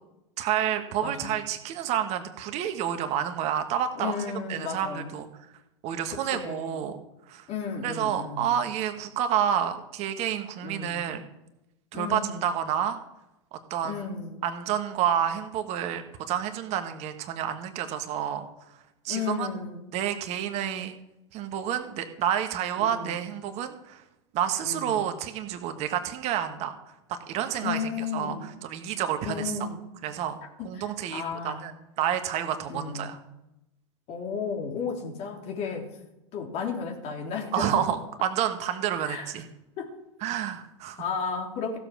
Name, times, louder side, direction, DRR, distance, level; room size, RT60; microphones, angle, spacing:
voice 1, 0.4-4.1 4.5-5.3 5.8-7.0 7.3-7.5 7.8-11.2 11.9-13.0 13.5-13.9 14.4-18.4 19.0-19.5 19.9-20.9 21.3-24.0 24.3-28.3 28.6-29.5 30.0-30.4 30.6-31.7 32.0-33.2 37.5-39.4 40.2-41.0, right 9 dB, 45° right, 7 dB, 1.4 m, -29 dB
voice 2, 1.0-1.3 4.0-5.1 6.1-6.9 7.5-8.5 10.6-11.2 11.9-12.4 13.8-14.4 19.1-19.9 22.8-23.2 24.6-25.1 27.6-28.6 29.2-29.8 30.6-31.7 32.7-33.1 34.1-35.9 36.3-37.8 39.0-39.3 39.8-39.9 41.0-41.8, left 6 dB, 45° left, 1 dB, 3.1 m, -34 dB
15.0 x 7.1 x 6.3 m, 0.92 s
hypercardioid pair, 90°, 15 cm